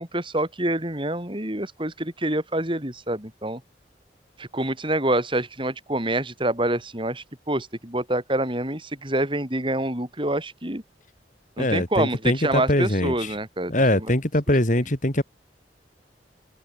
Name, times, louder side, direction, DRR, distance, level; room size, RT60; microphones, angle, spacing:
voice 1, 0.0-3.6 4.4-10.8 11.6-13.7, right 1 dB, 30° right, 5.5 m, -26 dB
voice 2, 11.6-13.3 13.7-15.2, left 1 dB, 45° left, 3.2 m, -22 dB
head